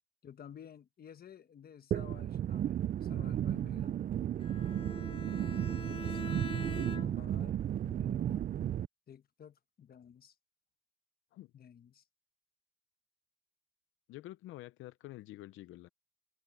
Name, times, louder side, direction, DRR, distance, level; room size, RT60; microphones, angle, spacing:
voice 1, 0.2-4.1 6.0-8.6 9.1-10.3 11.5-12.0, left 8 dB, 50° left, 1.3 m, -54 dB
sound 1, 1.9-8.9, right 10 dB, 45° right, 0.4 m, -34 dB
Bowed string instrument, 4.4-7.4, left 4 dB, 30° left, 1.7 m, -44 dB
voice 2, 6.7-7.4 11.3-11.5 14.1-15.9, left 16 dB, 90° left, 0.6 m, -49 dB
cardioid pair, 90°, 20 cm